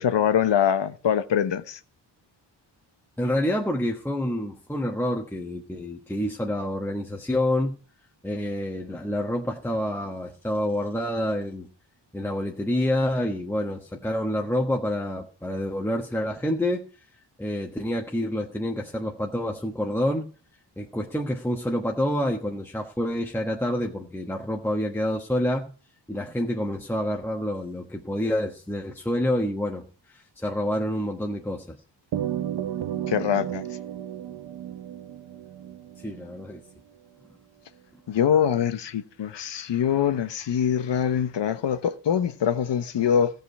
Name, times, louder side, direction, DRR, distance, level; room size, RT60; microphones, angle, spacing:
voice 1, 0.0-1.8 33.1-33.6 38.1-43.3, left 8 dB, 80° left, 1.2 m, -24 dB
voice 2, 3.2-7.8 8.2-11.7 12.1-16.8 17.4-20.3 20.8-25.7 26.1-31.8 36.0-36.6, left 1 dB, 5° left, 1.2 m, -28 dB
sound 1, 32.1-36.7, right 10 dB, 70° right, 0.9 m, -33 dB
16.5 x 5.5 x 8.3 m
wide cardioid pair, 160°, 42 cm